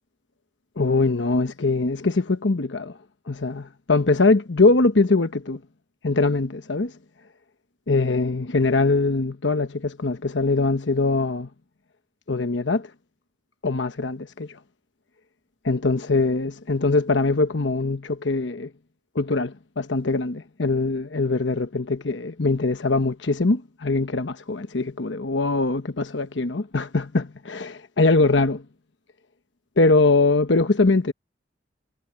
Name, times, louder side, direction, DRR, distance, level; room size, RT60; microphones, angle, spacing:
voice 1, 0.8-2.9 3.3-5.6 6.0-6.9 7.9-11.5 12.3-12.9 13.6-14.5 15.6-18.7 19.1-28.6 29.8-31.1, left 3 dB, 80° left, 1.1 m, -22 dB
head